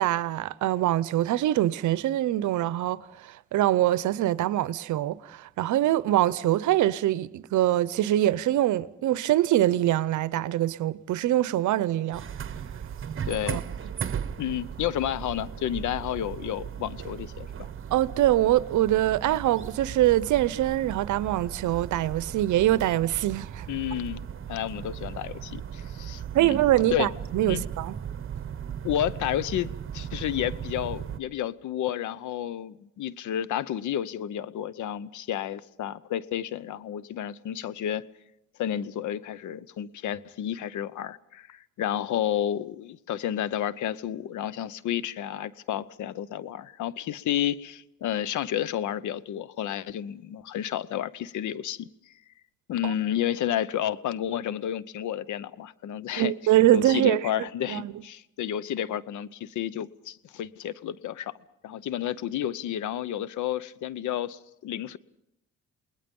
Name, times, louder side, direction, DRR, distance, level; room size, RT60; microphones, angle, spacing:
voice 1, 0.0-12.2 13.5-13.6 17.9-23.7 26.3-28.0 52.8-52.9 56.2-57.2 57.7-57.9, right 13 dB, 75° right, 0.8 m, -24 dB
sound 1, 12.1-31.2, right 8 dB, 45° right, 1.2 m, -37 dB
voice 2, 13.3-13.6 14.4-17.7 23.7-26.6 26.9-27.1 27.5-27.6 28.8-38.1 38.6-51.9 52.7-56.3 56.7-61.3 61.6-65.0, left 11 dB, 75° left, 0.8 m, -31 dB
29.0 x 20.0 x 5.4 m
cardioid pair, 90°, 30 cm